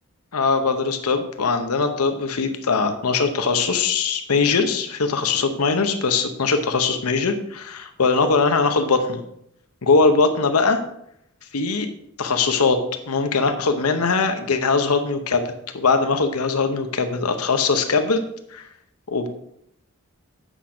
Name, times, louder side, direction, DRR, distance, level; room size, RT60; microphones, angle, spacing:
voice 1, 0.3-9.2 9.8-10.8 11.5-11.9 12.2-12.8 13.1-15.4 15.7-18.2 18.5-18.6 19.1-19.3, left 4 dB, 85° left, 7 dB, 0.9 m, -21 dB
8.2 x 6.0 x 5.1 m, 0.75 s
head